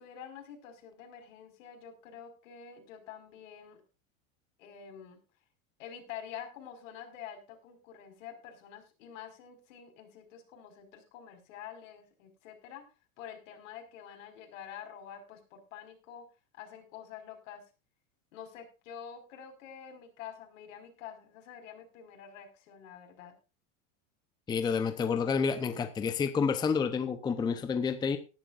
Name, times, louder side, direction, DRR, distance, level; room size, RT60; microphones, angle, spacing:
voice 1, 0.0-3.8 4.6-5.2 5.8-12.8 13.2-16.2 16.6-17.6 18.3-23.3, left 8 dB, 70° left, 4 dB, 5.3 m, -47 dB
voice 2, 24.5-28.2, left 5 dB, 10° left, 9 dB, 0.7 m, -29 dB
18.5 x 11.0 x 2.5 m, 0.32 s
supercardioid pair, 155°, 39 cm